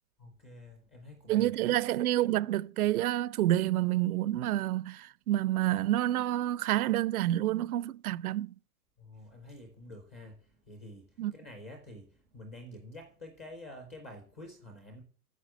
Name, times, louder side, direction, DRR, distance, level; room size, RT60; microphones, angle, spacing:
voice 1, 0.2-1.8 9.0-15.0, left 1 dB, 10° left, 0.4 m, -49 dB
voice 2, 1.3-8.5 11.2-11.3, right 14 dB, 65° right, 0.6 m, -28 dB
9.5 x 6.7 x 7.5 m
supercardioid pair, 170°, 47 cm